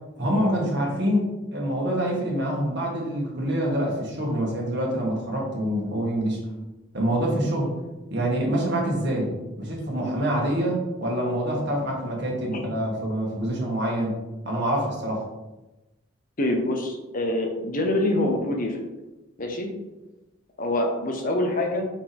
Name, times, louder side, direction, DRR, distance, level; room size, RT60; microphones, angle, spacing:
voice 1, 0.2-6.4 6.9-7.7 8.1-9.3 9.6-14.2 14.5-15.2, right 1 dB, 60° right, -2 dB, 1.7 m, -26 dB
voice 2, 16.4-18.8 19.4-19.7 20.6-21.8, left 1 dB, 45° left, 3 dB, 0.9 m, -25 dB
5.7 x 5.2 x 3.5 m, 1.1 s
head